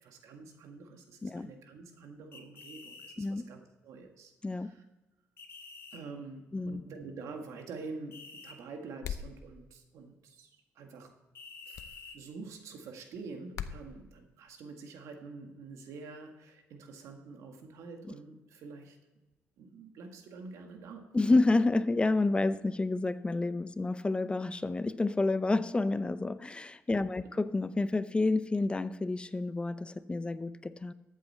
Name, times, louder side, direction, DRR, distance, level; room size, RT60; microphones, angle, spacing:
voice 1, 0.0-4.8 5.9-11.2 11.7-19.0 19.6-21.1 27.0-27.1, right 4 dB, 85° right, 4 dB, 1.8 m, -47 dB
sound 1, 2.3-3.2 5.4-6.0 8.1-8.6 11.3-12.2, left 4 dB, 50° left, 2.1 m, -49 dB
sound 2, 9.0-9.4 11.7-11.9 13.5-13.8, left 8 dB, 80° left, 0.7 m, -38 dB
voice 2, 21.1-30.9, left 2 dB, 20° left, 14 dB, 0.5 m, -29 dB
14.0 x 8.3 x 4.3 m, 1.1 s
cardioid pair, 90°, 5 cm